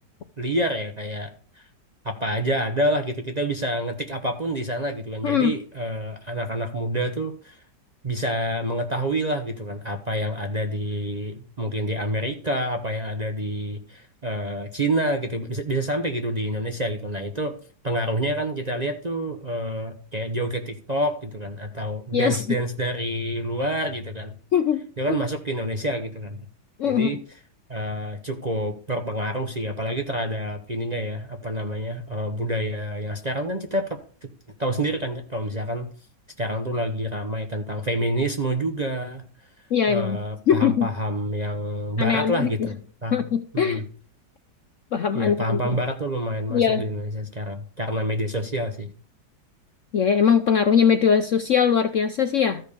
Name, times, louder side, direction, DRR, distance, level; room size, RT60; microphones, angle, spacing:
voice 1, 0.4-1.7 2.0-7.6 8.0-17.6 17.8-24.4 25.0-26.5 26.8-27.2 27.7-34.3 34.6-35.9 36.4-39.2 39.9-43.2 43.5-43.8 45.1-48.9, right 1 dB, 30° right, 4 dB, 0.8 m, -28 dB
voice 2, 22.1-22.4 24.5-24.8 25.1-25.2 26.8-27.1 39.7-40.2 40.5-40.9 42.0-42.5 43.1-43.8 44.9-45.6 46.5-46.8 49.9-52.6, left 7 dB, 60° left, 8 dB, 0.8 m, -21 dB
13.5 x 5.4 x 6.6 m, 0.43 s
omnidirectional pair, 2.0 m